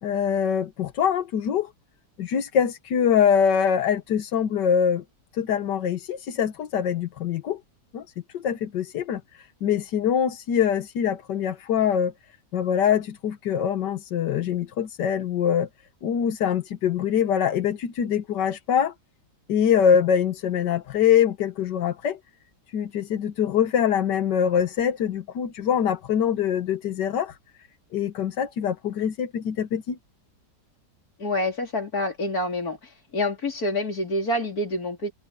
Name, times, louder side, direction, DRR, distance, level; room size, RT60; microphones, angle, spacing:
voice 1, 0.0-1.7 2.2-5.0 5.3-7.6 7.9-8.1 8.3-12.1 12.5-15.7 16.0-18.9 19.5-22.2 22.7-27.4 27.9-30.0, left 8 dB, 90° left, 1.7 m, -24 dB
voice 2, 31.2-32.8 33.1-35.1, left 1 dB, 60° left, 4.2 m, -27 dB
omnidirectional pair, 1.8 m